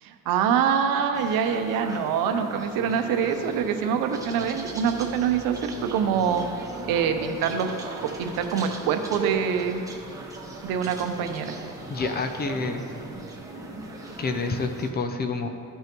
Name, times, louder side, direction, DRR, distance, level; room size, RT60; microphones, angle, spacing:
voice 1, 0.0-6.4 6.9-7.7 8.0-9.8 10.6-11.6, right 7 dB, 80° right, 6 dB, 0.8 m, -25 dB
sound 1, 1.1-14.9, right 3 dB, 10° right, 0.8 m, -39 dB
sound 2, 2.6-14.7, right 2 dB, 35° right, 2.0 m, -45 dB
voice 2, 11.9-12.8 14.2-15.5, left 3 dB, 30° left, 6 dB, 0.5 m, -28 dB
14.5 x 5.6 x 3.0 m, 2.5 s
cardioid pair, 140°, 34 cm